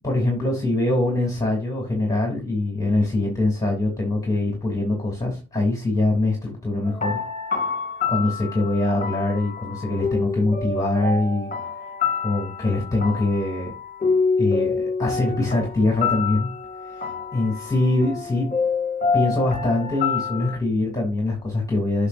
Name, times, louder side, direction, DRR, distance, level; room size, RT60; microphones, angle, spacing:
voice 1, 0.0-7.2 8.1-11.5 12.2-13.7 14.4-16.5 16.8-18.5 19.1-22.1, left 2 dB, 10° left, 0 dB, 2.8 m, -23 dB
sound 1, 6.8-20.6, left 5 dB, 25° left, 1.8 m, -27 dB
8.1 x 6.3 x 2.6 m, 0.32 s
cardioid pair, 90°, 30 cm